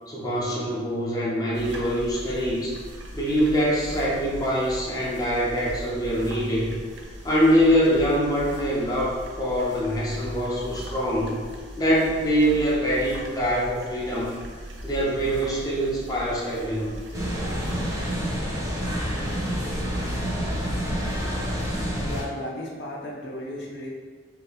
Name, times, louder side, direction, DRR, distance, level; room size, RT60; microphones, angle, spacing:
voice 1, 0.1-2.7 3.1-6.8 7.2-11.4 11.8-14.3 14.8-17.0, equal, 20° left, -6 dB, 0.5 m, -24 dB
sound 1, 1.5-18.4, equal, 65° right, 0.5 m, -39 dB
sound 2, 17.1-22.2, equal, 20° right, 0.7 m, -28 dB
voice 2, 22.0-23.9, left 1 dB, 65° left, -2 dB, 0.6 m, -35 dB
2.6 x 2.6 x 3.4 m, 1.5 s
head